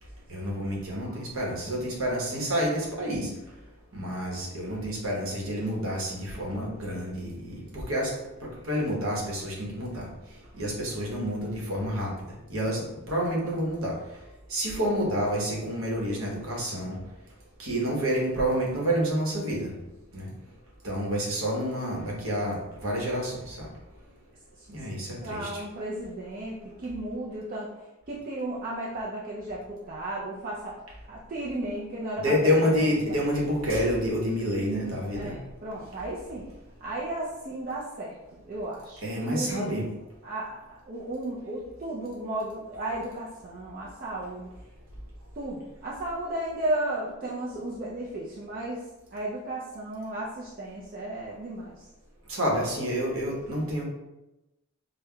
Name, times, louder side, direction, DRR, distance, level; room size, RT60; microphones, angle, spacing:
voice 1, 0.3-3.3 3.9-8.1 8.4-10.1 10.5-12.1 12.5-13.9 14.5-17.0 17.6-19.7 20.1-20.3 20.8-23.7 24.7-25.5 32.2-35.4 39.0-39.9 52.3-53.8, equal, 65° right, -2 dB, 1.0 m, -28 dB
voice 2, 25.2-33.1 35.2-36.5 36.8-38.2 38.4-39.7 40.2-44.5 45.4-51.9, right 1 dB, 40° right, -5 dB, 0.4 m, -34 dB
5.2 x 2.1 x 2.2 m, 0.98 s
head